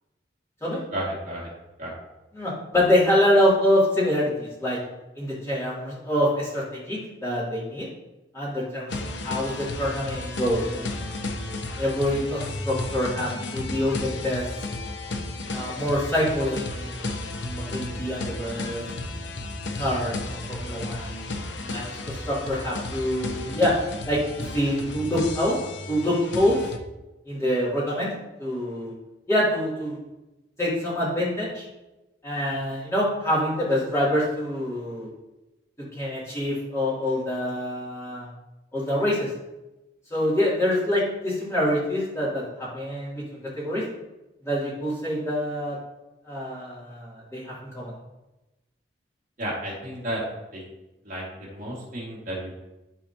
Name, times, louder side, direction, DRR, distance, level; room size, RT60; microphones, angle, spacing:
voice 1, 0.9-1.5 1.8-1.9 49.4-50.2 50.5-50.6 51.0-52.5, right 1 dB, 45° right, -5 dB, 2.2 m, -32 dB
voice 2, 2.3-4.8 5.2-7.9 8.3-11.1 11.8-14.4 15.5-18.8 19.7-21.1 21.7-23.7 24.0-25.6 25.9-26.6 27.3-28.1 28.4-28.9 29.3-30.0 30.6-31.6 32.2-35.1 35.9-38.3 38.7-39.3 40.1-43.8 44.4-45.8 46.3-47.9, left 1 dB, 15° left, -8 dB, 2.9 m, -26 dB
sound 1, 8.9-26.8, left 2 dB, 80° left, 0.8 m, -33 dB
13.0 x 4.7 x 2.9 m, 0.99 s
head